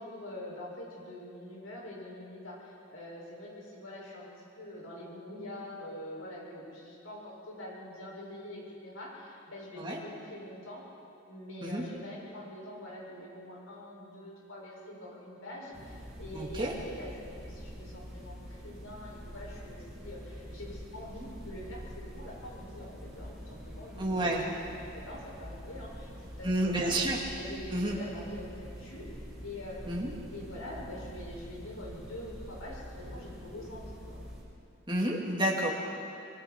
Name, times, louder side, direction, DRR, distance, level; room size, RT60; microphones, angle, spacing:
voice 1, 0.0-10.8 11.3-24.5 24.9-27.0 27.4-29.2 29.4-34.2, left 1 dB, 80° left, -4 dB, 6.6 m, -45 dB
sound 1, 15.7-34.4, equal, 5° right, 6.4 m, -46 dB
voice 2, 16.3-16.8 24.0-24.4 26.4-27.2 27.7-27.9 29.9-30.1 34.9-35.7, right 1 dB, 20° right, -2 dB, 2.5 m, -30 dB
25.0 x 23.5 x 4.6 m, 2.6 s
head